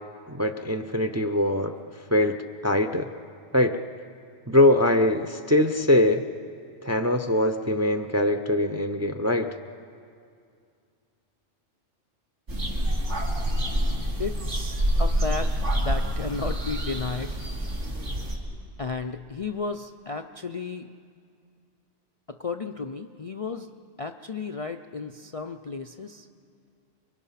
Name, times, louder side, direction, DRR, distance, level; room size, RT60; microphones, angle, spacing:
voice 1, 0.3-1.8 2.1-2.4 2.6-3.1 3.5-3.8 4.5-6.2 6.8-9.5, left 1 dB, 20° right, 8 dB, 0.5 m, -22 dB
sound 1, 12.5-18.4, equal, 75° right, 3.1 m, -27 dB
voice 2, 14.2-17.4 18.8-20.9 22.3-23.7 24.0-26.3, left 4 dB, 40° left, 5 dB, 0.5 m, -34 dB
30.0 x 22.0 x 5.8 m, 2.3 s
omnidirectional pair, 1.2 m